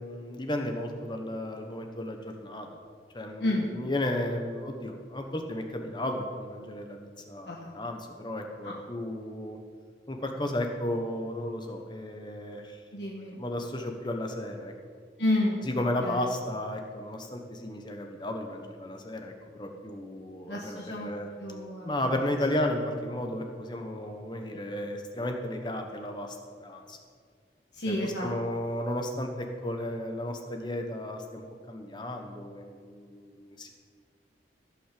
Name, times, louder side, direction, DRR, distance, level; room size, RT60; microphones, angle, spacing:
voice 1, 0.0-2.7 3.1-9.6 10.1-12.8 13.4-14.7 15.6-21.3 21.8-27.0 27.9-31.4 31.7-33.7, left 1 dB, 25° left, 4 dB, 1.2 m, -34 dB
voice 2, 12.9-13.4 15.2-15.6 16.0-16.2 20.5-21.1 21.4-21.9 27.7-28.3, left 1 dB, 70° left, -2 dB, 1.5 m, -30 dB
15.5 x 6.0 x 7.7 m, 2.1 s
head